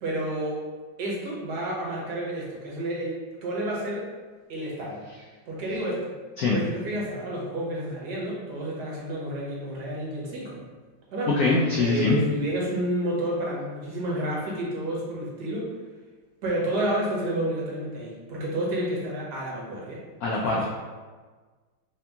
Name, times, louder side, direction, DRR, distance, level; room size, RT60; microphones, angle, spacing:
voice 1, 0.0-0.6 1.0-4.1 4.5-5.0 5.5-6.1 6.5-10.6 11.1-11.3 11.7-15.7 16.4-20.0 20.4-20.6, right 1 dB, 60° right, -4 dB, 1.3 m, -30 dB
voice 2, 11.4-12.2 20.2-20.7, left 3 dB, 90° left, -4 dB, 0.7 m, -23 dB
3.5 x 2.8 x 3.4 m, 1.4 s
omnidirectional pair, 2.2 m